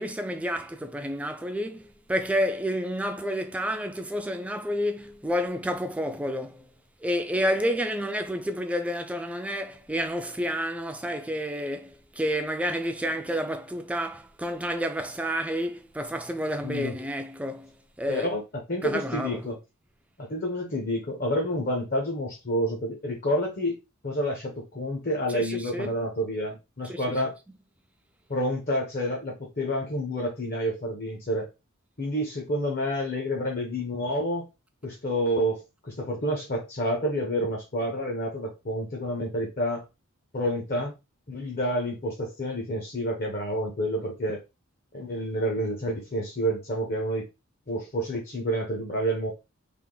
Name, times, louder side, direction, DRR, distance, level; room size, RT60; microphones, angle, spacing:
voice 1, 0.0-6.7 7.0-17.7 18.0-18.3 18.8-19.5 25.3-26.0 26.8-27.0, equal, 5° right, 0.4 m, -30 dB
voice 2, 16.6-16.9 18.1-18.4 18.7-19.6 20.2-23.7 24.0-27.3 28.3-31.5 32.0-34.4 34.8-39.8 40.3-41.0 41.3-44.4 44.9-47.3 47.7-49.3, equal, 45° left, 0.8 m, -29 dB
3.5 x 2.5 x 3.8 m
head